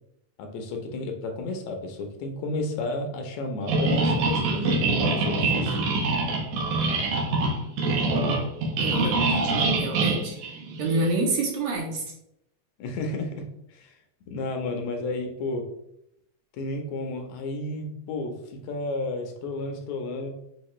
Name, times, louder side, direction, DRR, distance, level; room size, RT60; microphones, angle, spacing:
voice 1, 0.4-5.8 12.8-14.0 14.3-15.6 16.5-20.3, left 2 dB, 75° left, 3 dB, 1.9 m, -32 dB
sound 1, 3.7-11.1, right 3 dB, 90° right, 2.3 m, -24 dB
voice 2, 8.8-9.1 9.4-10.4 10.8-12.0, right 2 dB, 70° right, 0 dB, 1.9 m, -27 dB
6.4 x 2.5 x 3.0 m, 0.78 s
omnidirectional pair, 3.3 m